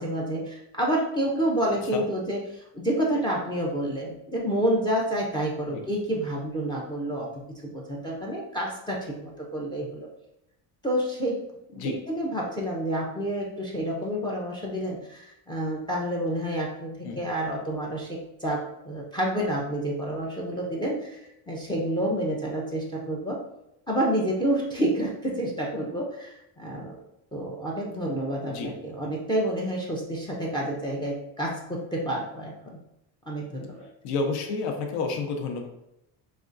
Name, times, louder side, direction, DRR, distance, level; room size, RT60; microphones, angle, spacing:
voice 1, 0.0-10.1 10.8-11.4 11.7-23.4 23.9-27.0 27.3-32.8 33.3-33.8, right 1 dB, 10° left, -1 dB, 0.4 m, -29 dB
voice 2, 34.0-35.7, left 4 dB, 70° left, 2 dB, 0.8 m, -30 dB
5.0 x 2.4 x 2.5 m, 0.86 s
cardioid pair, 135°, 42 cm